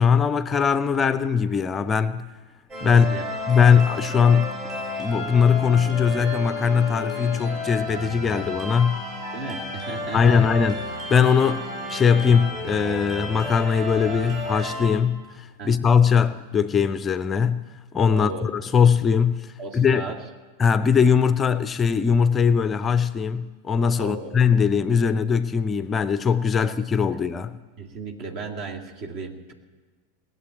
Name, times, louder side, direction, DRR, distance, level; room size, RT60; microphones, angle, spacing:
voice 1, 0.0-2.3 2.8-3.1 3.5-4.6 5.0-9.0 10.1-10.8 11.1-17.6 17.9-20.0 20.6-27.6, left 6 dB, 20° left, 0.5 m, -20 dB
sound 1, 2.7-14.9, left 1 dB, 25° right, 6.1 m, -32 dB
voice 2, 2.8-3.3 9.3-10.4 15.6-15.7 18.1-18.5 19.6-20.2 24.0-24.4 26.6-26.7 27.8-29.5, right 3 dB, 45° right, 2.2 m, -35 dB
18.5 x 7.7 x 10.0 m
figure-of-eight pair, 90°, 0 cm